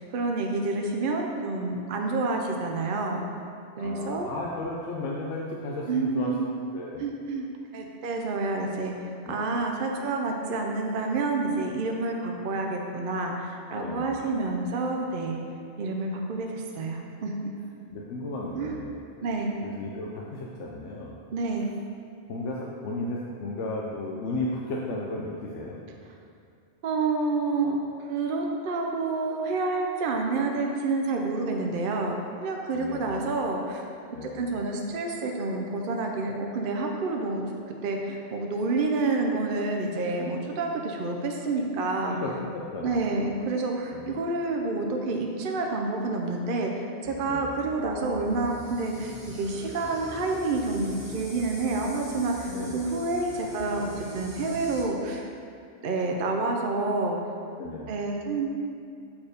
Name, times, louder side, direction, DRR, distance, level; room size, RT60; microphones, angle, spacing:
voice 1, 0.0-3.2 3.8-4.3 5.9-6.4 7.0-7.5 7.7-15.4 15.8-17.5 18.5-18.7 19.2-19.6 21.3-21.8 26.8-27.8 28.1-32.1 32.4-33.9 34.2-42.2 42.8-55.3 55.8-57.2 57.9-58.5, right 3 dB, 55° right, 1 dB, 0.7 m, -28 dB
voice 2, 3.8-6.3 6.7-7.1 9.3-9.5 13.7-14.2 17.9-19.0 19.6-21.2 22.3-25.8 32.7-33.2 34.1-34.5 42.1-43.1 43.9-44.2 47.3-47.5 52.5-52.7 57.6-57.9, left 2 dB, 90° left, -3 dB, 1.0 m, -34 dB
sound 1, 47.0-54.8, equal, 5° right, 1.7 m, -43 dB
7.1 x 4.5 x 5.0 m, 2.4 s
omnidirectional pair, 1.2 m